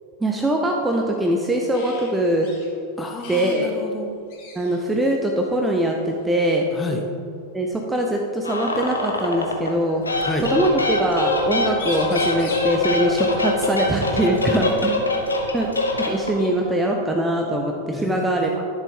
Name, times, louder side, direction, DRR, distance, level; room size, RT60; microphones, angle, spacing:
voice 1, 0.2-2.5 3.3-3.7 4.5-6.6 7.5-10.0 10.5-15.0 15.5-18.6, right 1 dB, 10° right, 1 dB, 0.7 m, -22 dB
sound 1, 1.7-2.1 2.4-2.7 3.2-3.6 3.9-4.0 4.3-4.9 6.0-6.3 8.0-8.1 9.2-10.0 11.4-11.5 11.7-12.7 14.7-14.8 15.2-16.2, left 2 dB, 50° left, 2.0 m, -39 dB
voice 2, 3.0-4.1 6.7-7.0 10.2-10.5 14.8-14.9 17.9-18.6, left 1 dB, 15° left, 2 dB, 1.1 m, -29 dB
sound 2, 8.4-9.7 10.0-16.5, left 2 dB, 80° left, 1.0 m, -24 dB
11.0 x 7.0 x 3.7 m, 2.5 s
figure-of-eight pair, 90°, 0 cm